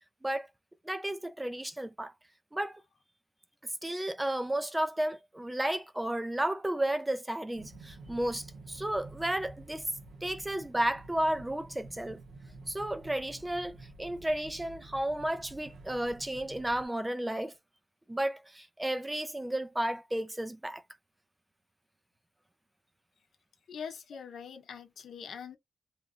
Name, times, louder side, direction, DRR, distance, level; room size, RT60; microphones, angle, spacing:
voice 1, 0.9-2.1 2.5-2.8 3.8-9.9 10.2-12.2 12.7-17.5 18.1-20.8, right 1 dB, 10° right, 0.4 m, -33 dB
sound 1, 7.5-16.9, right 2 dB, 80° right, 0.9 m, -50 dB
voice 2, 23.7-25.6, left 7 dB, 80° left, 0.8 m, -43 dB
3.1 x 2.5 x 2.5 m
cardioid pair, 80°, 0 cm